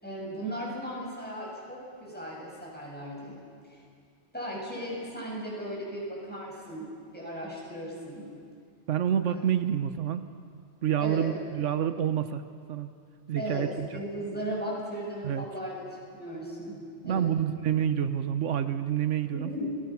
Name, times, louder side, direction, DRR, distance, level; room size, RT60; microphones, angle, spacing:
voice 1, 0.0-3.4 3.6-3.8 4.3-8.3 9.3-9.4 11.0-11.3 13.4-15.8 16.1-17.3 19.3-19.8, equal, 10° left, -5 dB, 6.7 m, -36 dB
voice 2, 8.9-10.2 10.8-12.4 12.7-12.9 13.3-13.9 15.2-15.4 17.0-19.5, right 9 dB, 90° right, 10 dB, 1.2 m, -28 dB
27.5 x 20.0 x 5.9 m, 2.2 s
omnidirectional pair, 1.2 m